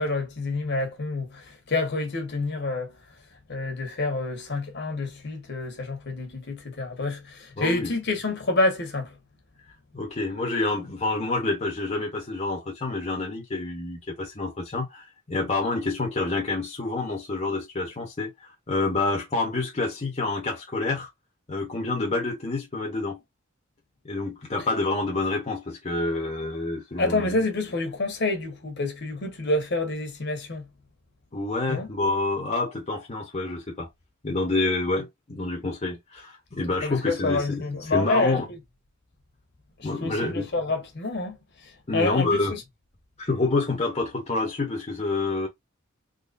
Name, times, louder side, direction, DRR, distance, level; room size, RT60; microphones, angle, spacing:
voice 1, 0.0-2.9 3.5-9.1 27.0-30.6 31.7-31.9 36.8-38.4 40.0-41.4 41.9-42.4, left 2 dB, 55° left, 1.4 m, -28 dB
voice 2, 7.6-7.9 9.9-21.1 21.5-23.2 24.0-27.3 31.3-33.9 34.2-38.5 39.8-40.5 41.9-42.5 43.2-45.5, left 2 dB, 35° left, 1.0 m, -28 dB
4.0 x 3.1 x 2.6 m
head